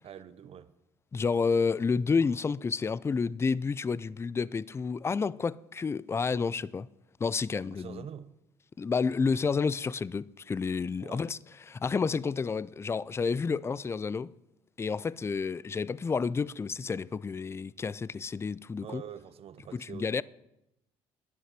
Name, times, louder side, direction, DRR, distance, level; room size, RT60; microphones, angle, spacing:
voice 1, 0.0-0.7 7.7-8.3 11.0-11.3 18.8-20.2, right 9 dB, 50° right, 0.8 m, -45 dB
voice 2, 1.1-6.9 7.2-8.0 8.8-11.4 11.7-14.3 14.8-19.0 19.7-20.2, left 5 dB, 20° left, 0.4 m, -30 dB
9.9 x 8.3 x 7.5 m
supercardioid pair, 80°, 12 cm